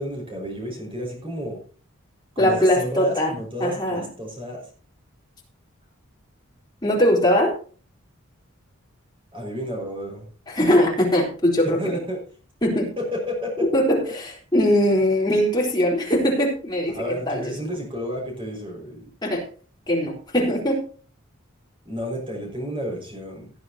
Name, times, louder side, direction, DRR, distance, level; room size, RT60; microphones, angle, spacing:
voice 1, 0.0-1.6 2.4-4.7 9.3-10.2 11.8-12.2 13.0-13.7 16.9-19.1 21.9-23.5, equal, 25° right, 0 dB, 5.5 m, -31 dB
voice 2, 2.4-4.1 6.8-7.6 10.5-12.0 12.6-12.9 13.7-17.0 17.3-17.5 19.2-19.5 19.9-20.9, equal, 20° left, -2 dB, 3.8 m, -21 dB
18.0 x 9.5 x 2.9 m, 0.40 s
head